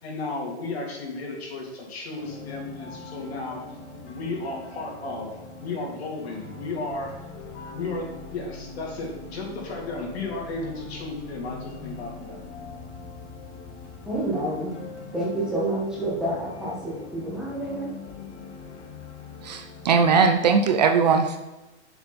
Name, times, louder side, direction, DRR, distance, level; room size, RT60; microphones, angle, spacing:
voice 1, 0.0-3.6 4.0-5.3 5.6-7.2 7.5-12.4, left 3 dB, 60° left, -2 dB, 3.5 m, -34 dB
sound 1, 2.2-20.3, left 3 dB, 75° left, 2.1 m, -42 dB
voice 2, 14.0-14.8 15.1-17.9, right 1 dB, ahead, -7 dB, 1.6 m, -28 dB
voice 3, 19.4-21.4, right 5 dB, 35° right, 6 dB, 0.6 m, -20 dB
9.9 x 7.1 x 4.3 m, 1.1 s
hypercardioid pair, 170°, 35 cm